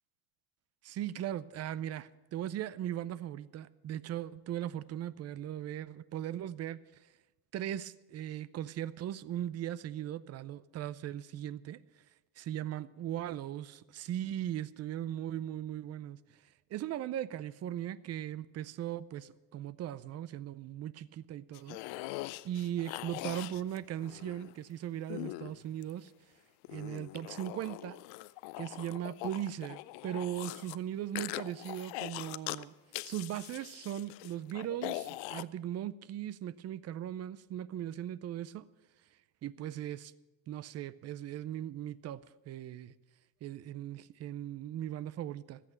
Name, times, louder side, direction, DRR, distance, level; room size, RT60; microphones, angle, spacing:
voice 1, 0.8-6.8 7.5-11.8 12.4-16.2 16.7-21.8 22.4-26.1 26.7-28.0 28.6-32.7 33.0-38.7 39.4-40.1 40.5-42.9 43.4-45.6, right 11 dB, 35° right, 18 dB, 0.5 m, -38 dB
sound 1, 21.5-24.5 25.1-26.1 26.6-30.8 31.2-32.6 32.9-35.4, left 19 dB, 70° left, 0.6 m, -42 dB
14.0 x 8.5 x 7.8 m, 1.1 s
supercardioid pair, 120°, 48 cm